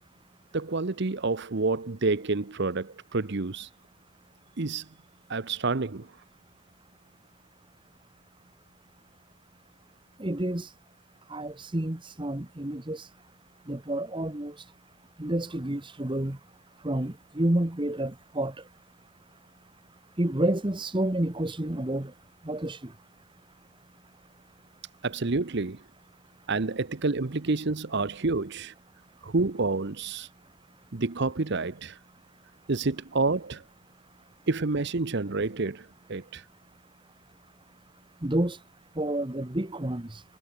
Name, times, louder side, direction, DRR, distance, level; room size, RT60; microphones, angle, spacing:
voice 1, 0.5-3.7 4.6-4.9 5.3-6.1 25.0-25.8 26.5-28.7 29.2-30.3 30.9-32.0 32.7-33.6 34.5-36.4, right 3 dB, 50° right, 0.8 m, -28 dB
voice 2, 10.2-10.7 11.3-13.1 13.7-14.6 15.2-16.4 16.8-18.5 20.2-22.1 22.4-22.9 38.2-38.6 38.9-40.2, right 1 dB, 20° right, 1.1 m, -29 dB
head